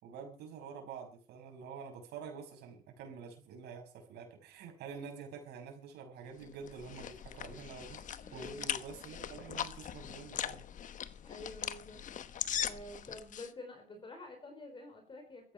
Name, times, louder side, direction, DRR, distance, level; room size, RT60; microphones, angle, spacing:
voice 1, 0.0-8.0 8.3-10.6, right 6 dB, 80° right, 3 dB, 6.4 m, -47 dB
sound 1, 6.4-13.5, left 9 dB, 50° left, 1.1 m, -40 dB
voice 2, 8.2-8.7 11.2-15.5, left 2 dB, 30° left, 5 dB, 4.8 m, -49 dB
15.5 x 14.0 x 5.8 m, 0.42 s
cardioid pair, 110°, 17 cm